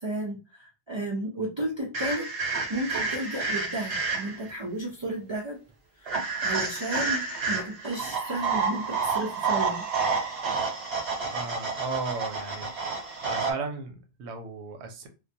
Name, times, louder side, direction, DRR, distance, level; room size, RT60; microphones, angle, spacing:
voice 1, 0.0-2.3 2.7-5.6 6.0-6.1 6.4-9.8, right 1 dB, 50° right, 0.3 m, -33 dB
sound 1, 1.9-4.5 6.1-13.5, right 4 dB, 65° right, 1.1 m, -29 dB
voice 2, 11.3-12.7 13.2-15.1, right 4 dB, 90° right, 0.9 m, -35 dB
2.3 x 2.1 x 2.6 m
omnidirectional pair, 1.1 m